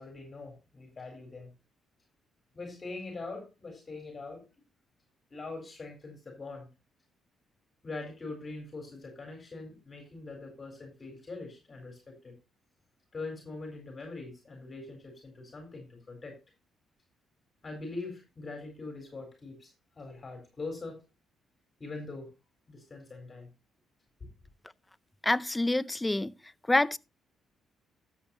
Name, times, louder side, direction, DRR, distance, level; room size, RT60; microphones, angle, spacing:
voice 1, 0.0-1.5 2.5-4.5 5.3-6.7 7.8-12.3 13.1-16.4 17.6-21.0 21.8-22.3 22.7-23.5, left 3 dB, 30° left, 3.9 m, -42 dB
voice 2, 25.2-26.3 26.7-27.0, left 2 dB, 15° left, 0.5 m, -26 dB
13.0 x 7.9 x 2.8 m
cardioid pair, 90°, 0 cm